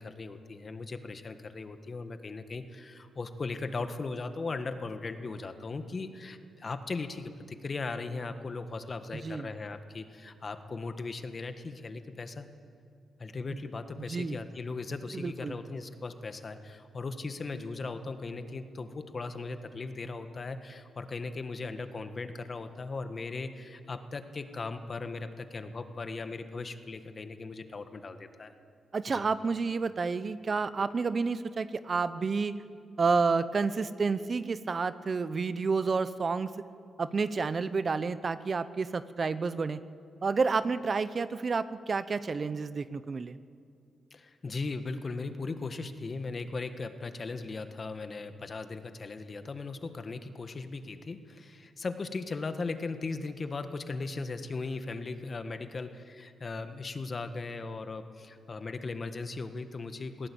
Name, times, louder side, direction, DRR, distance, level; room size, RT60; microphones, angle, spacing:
voice 1, 0.0-12.5 13.2-28.5 29.1-29.3 44.1-60.3, left 3 dB, 40° left, 9 dB, 1.6 m, -38 dB
voice 2, 15.1-15.5 28.9-32.6 33.0-36.5 37.0-39.8 40.2-43.4, right 4 dB, 45° right, 14 dB, 0.8 m, -30 dB
22.0 x 17.0 x 8.7 m, 2.4 s
cardioid pair, 80°, 0 cm